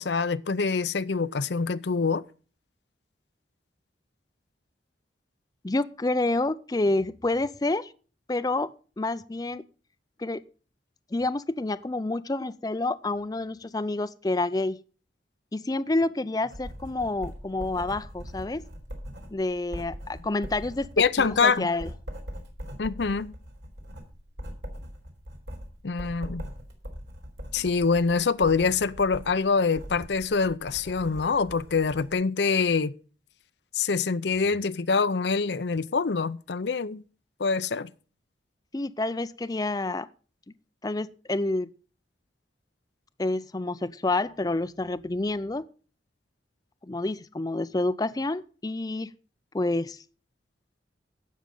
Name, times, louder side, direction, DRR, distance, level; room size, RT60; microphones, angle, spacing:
voice 1, 0.0-2.2 21.0-21.7 22.8-23.3 25.8-26.5 27.5-32.9 33.7-37.0 37.4-37.9, left 4 dB, 70° left, 0.6 m, -25 dB
voice 2, 5.6-7.9 8.3-8.7 9.0-9.6 10.2-10.4 11.1-14.8 15.5-18.7 19.3-20.9 21.2-21.9 38.7-40.1 40.8-41.7 43.2-45.6 46.9-49.1 49.5-50.0, left 2 dB, 20° left, 0.5 m, -28 dB
Writing, 16.5-32.1, equal, 75° right, 3.9 m, -41 dB
16.5 x 6.4 x 5.4 m
head